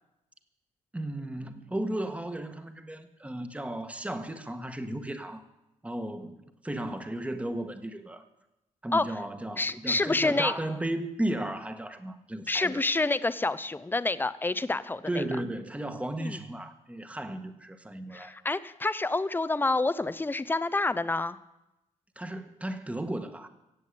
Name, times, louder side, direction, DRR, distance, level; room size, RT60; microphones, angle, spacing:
voice 1, 0.9-5.4 5.8-8.2 8.8-12.8 15.1-18.3 22.1-23.5, right 1 dB, 10° right, 1.5 m, -35 dB
voice 2, 9.6-10.5 12.5-15.2 16.2-16.4 18.1-21.4, left 2 dB, 15° left, 0.7 m, -28 dB
16.0 x 8.0 x 8.5 m
cardioid pair, 85°, 13 cm